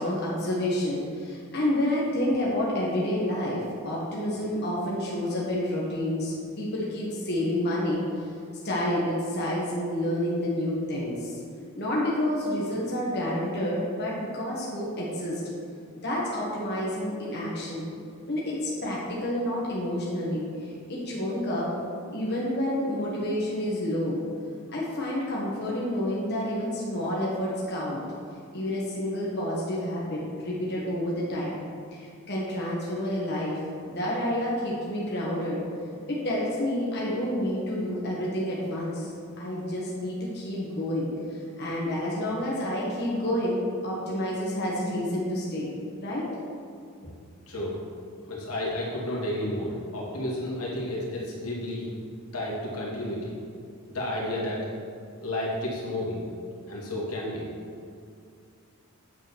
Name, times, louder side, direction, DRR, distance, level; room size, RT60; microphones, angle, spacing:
voice 1, 0.0-8.3 8.6-11.4 11.8-15.4 16.0-17.9 18.3-21.7 22.1-24.2 24.7-28.0 28.5-31.6 31.9-35.6 36.1-45.7 46.0-46.3, left 1 dB, 50° left, -5 dB, 1.6 m, -29 dB
voice 2, 47.5-47.8 48.2-51.9 52.3-53.4 53.9-54.7 55.2-56.2 56.7-57.5, left 1 dB, 85° left, -5 dB, 2.4 m, -31 dB
8.6 x 5.0 x 7.0 m, 2.3 s
head